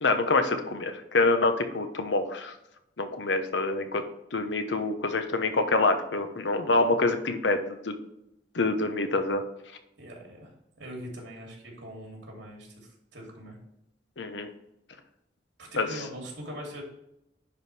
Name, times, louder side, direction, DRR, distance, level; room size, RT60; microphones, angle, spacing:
voice 1, 0.0-2.5 3.0-4.0 4.3-7.9 8.5-9.4 14.2-14.5 15.8-15.9, left 3 dB, 85° left, 8 dB, 1.0 m, -26 dB
voice 2, 10.0-13.6 15.6-16.8, equal, 85° right, -1 dB, 2.9 m, -42 dB
10.5 x 4.7 x 3.4 m, 0.82 s
head